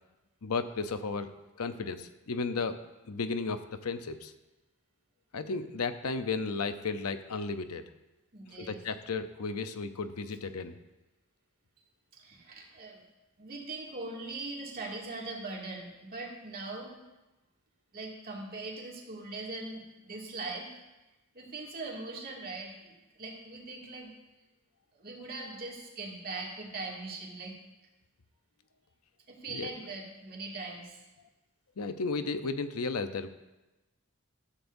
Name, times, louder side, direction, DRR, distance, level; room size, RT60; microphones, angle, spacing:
voice 1, 0.4-1.3 1.6-2.8 3.1-4.3 5.3-7.8 8.5-10.8 29.5-29.7 31.8-33.3, left 4 dB, 90° left, 9 dB, 0.7 m, -34 dB
voice 2, 8.3-8.8 12.1-13.0 13.4-17.0 17.9-20.7 21.3-24.1 24.9-27.5 29.3-31.0, right 3 dB, 45° right, -2 dB, 2.3 m, -41 dB
14.0 x 13.0 x 2.7 m, 1.1 s
head